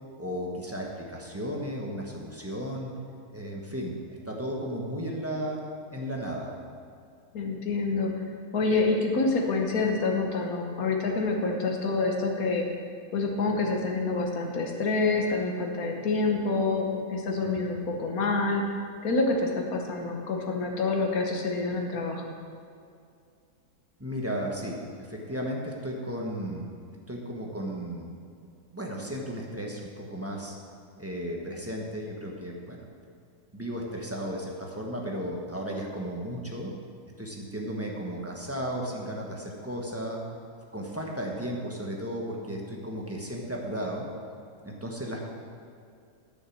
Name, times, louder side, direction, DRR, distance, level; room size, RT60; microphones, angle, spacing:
voice 1, 0.2-2.9 3.3-5.6 5.9-6.5 17.4-17.6 24.0-26.7 27.1-28.1 28.7-30.6 31.0-32.8 33.5-36.7 37.2-40.2 40.7-44.0 44.6-45.2, equal, 10° right, -1 dB, 1.2 m, -34 dB
voice 2, 7.3-8.1 8.5-12.7 13.1-18.6 19.0-22.2, left 3 dB, 70° left, 2 dB, 1.7 m, -27 dB
9.3 x 6.5 x 7.3 m, 2.4 s
omnidirectional pair, 1.6 m